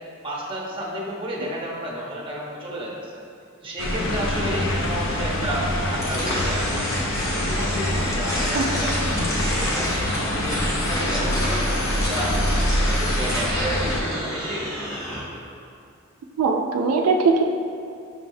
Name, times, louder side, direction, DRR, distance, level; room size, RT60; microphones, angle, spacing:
voice 1, 0.2-3.2 3.6-6.9 7.3-9.0 9.3-12.4 12.9-14.7, right 1 dB, 25° right, -3 dB, 0.6 m, -31 dB
sound 1, 3.8-14.0, left 1 dB, 65° left, 0.5 m, -25 dB
sound 2, 6.0-15.2, equal, 15° left, 0.7 m, -30 dB
voice 2, 16.4-17.4, right 4 dB, 80° right, 5 dB, 0.3 m, -20 dB
6.2 x 3.2 x 2.6 m, 2.4 s
head